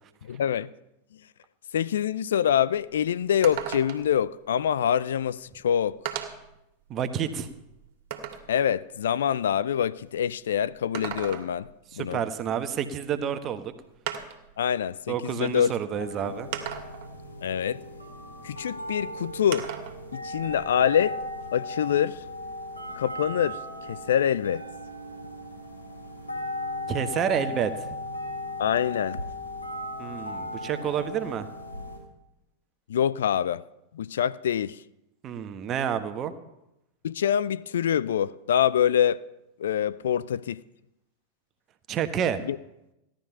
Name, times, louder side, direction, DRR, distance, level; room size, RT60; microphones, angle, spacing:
voice 1, 0.3-0.7 1.7-6.0 8.5-11.7 12.0-12.2 14.6-16.3 17.4-17.8 18.4-19.7 20.1-21.2 21.5-22.2 23.0-23.6 23.9-24.6 28.6-29.2 32.9-33.6 33.9-34.8 37.0-39.2 39.6-40.6 42.5-42.6, left 9 dB, 60° left, 0.4 m, -25 dB
sound 1, 2.5-2.6 2.9-3.0 3.4-4.2 5.2-5.3 6.1-6.5 7.1-8.5 10.7-11.7 13.2-13.3 14.1-14.5 15.5-15.6 16.5-17.1 19.5-20.0 20.4-21.5, right 10 dB, 50° right, 2.0 m, -36 dB
voice 2, 6.9-7.5 11.9-13.7 15.1-16.5 26.9-27.9 30.0-31.5 35.2-36.3 41.9-42.4, right 8 dB, 30° right, 1.3 m, -29 dB
sound 2, 16.0-32.0, left 1 dB, 85° left, 3.9 m, -37 dB
16.5 x 11.5 x 5.6 m
figure-of-eight pair, 90°, 0 cm